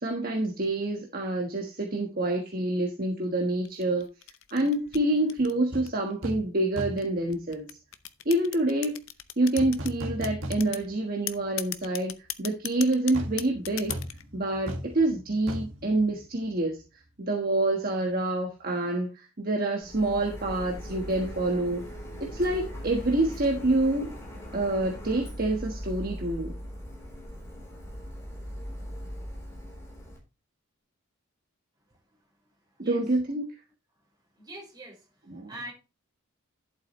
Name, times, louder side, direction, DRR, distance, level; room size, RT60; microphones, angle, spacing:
voice 1, 0.0-4.1 4.5-7.7 8.2-9.0 9.4-13.9 14.3-16.8 17.2-21.8 22.2-24.2 24.5-26.5 32.8-33.5 35.3-35.5, right 2 dB, 40° right, 1 dB, 1.3 m, -27 dB
sound 1, 3.6-6.1 6.8-9.9 10.2-10.9 11.3-14.2, left 13 dB, 65° left, 0.7 m, -37 dB
sound 2, 5.7-5.9 6.2-6.5 6.8-7.2 9.6-11.0 11.4-11.5 13.1-16.8 17.1-17.2, equal, 60° right, 1.8 m, -37 dB
Printer, 19.8-30.2, equal, 15° left, 3.7 m, -40 dB
voice 2, 31.9-33.1 34.3-35.7, right 1 dB, 20° right, -2 dB, 5.2 m, -46 dB
11.5 x 7.6 x 3.1 m, 0.28 s
head